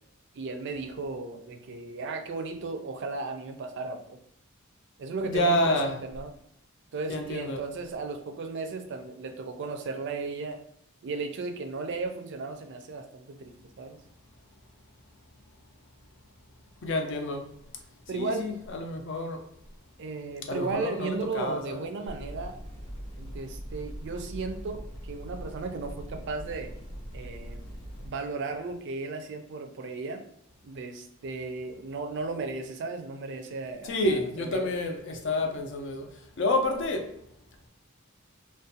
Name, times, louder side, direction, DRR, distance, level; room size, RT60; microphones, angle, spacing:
voice 1, 0.3-4.2 5.0-6.3 6.9-10.6 11.0-14.0 18.1-18.5 20.0-22.6 23.2-26.7 27.1-27.6 28.0-30.2 30.6-34.7, right 3 dB, 55° right, 0.4 m, -35 dB
voice 2, 5.2-6.0 7.1-7.6 16.8-17.4 18.1-19.4 20.5-21.8 33.8-36.1 36.4-37.1, left 1 dB, 60° left, 0.5 m, -28 dB
sound 1, 22.1-28.1, equal, 80° left, 0.8 m, -41 dB
2.5 x 2.1 x 2.6 m
head